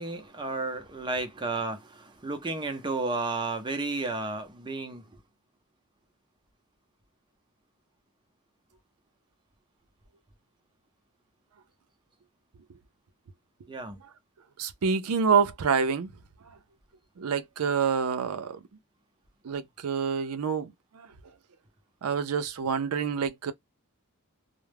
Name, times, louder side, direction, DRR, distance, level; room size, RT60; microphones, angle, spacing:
voice 1, 0.0-5.2 13.7-14.0, right 3 dB, 20° right, 0.5 m, -32 dB
voice 2, 14.6-16.1 17.2-18.6 19.4-21.1 22.0-23.5, right 6 dB, 80° right, 0.5 m, -27 dB
2.3 x 2.0 x 3.2 m
head